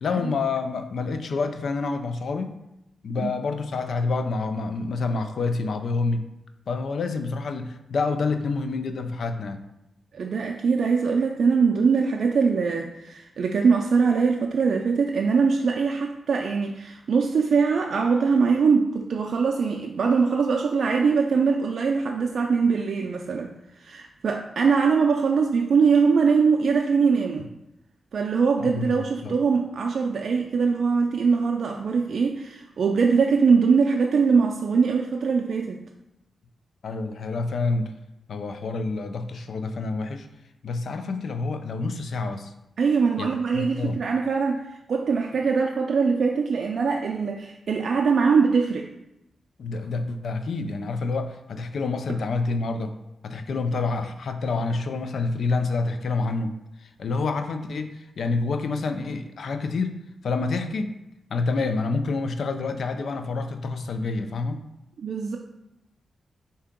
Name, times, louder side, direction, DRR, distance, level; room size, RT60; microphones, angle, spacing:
voice 1, 0.0-2.5 3.0-6.3 6.7-9.6 28.6-29.4 36.8-37.9 38.3-40.3 40.6-42.5 43.2-44.0 49.6-52.9 53.2-56.5 56.8-61.0 61.3-64.7, left 3 dB, 75° left, 8 dB, 0.3 m, -28 dB
voice 2, 10.1-23.5 23.8-27.4 28.1-35.8 42.8-48.9 65.0-65.4, right 5 dB, 70° right, 1 dB, 0.3 m, -22 dB
4.5 x 2.8 x 3.6 m, 0.88 s
cardioid pair, 65°, 0 cm